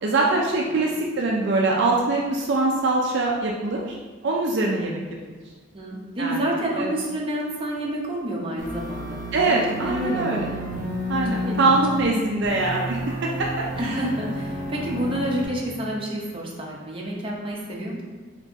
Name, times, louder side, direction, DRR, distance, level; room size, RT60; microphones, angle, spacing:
voice 1, 0.0-4.0 4.2-5.0 6.2-6.4 6.8-6.9 9.3-10.5 11.1-14.0, right 3 dB, 60° right, -2 dB, 0.4 m, -23 dB
voice 2, 5.7-9.6 9.8-10.5 11.2-11.8 13.8-18.0, right 1 dB, 25° right, -3 dB, 0.8 m, -29 dB
sound 1, 8.6-12.0 12.4-15.4, left 1 dB, 45° right, 1.1 m, -31 dB
4.1 x 2.9 x 3.5 m, 1.4 s
head